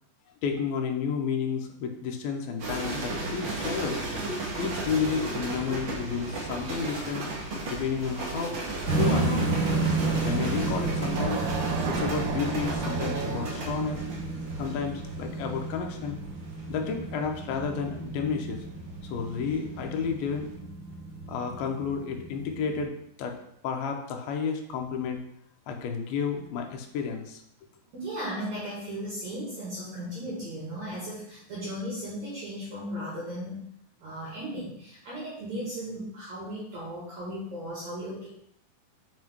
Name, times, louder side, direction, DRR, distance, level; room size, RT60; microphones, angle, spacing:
voice 1, 0.4-4.0 4.6-7.3 7.7-9.5 10.0-11.4 11.9-14.0 14.6-16.2 16.7-18.6 19.0-20.5 21.3-23.4 23.6-25.2 25.7-27.4, left 6 dB, 85° left, 3 dB, 2.6 m, -31 dB
sound 1, 2.6-19.8 20.1-20.5, right 2 dB, 90° right, 1.0 m, -35 dB
sound 2, 8.8-22.8, right 3 dB, 40° right, 2.5 m, -32 dB
sound 3, 11.1-14.0, right 6 dB, 75° right, 2.4 m, -35 dB
voice 2, 27.9-33.6 34.0-38.3, equal, 55° right, -8 dB, 2.9 m, -36 dB
7.7 x 5.0 x 3.1 m, 0.72 s
omnidirectional pair, 4.3 m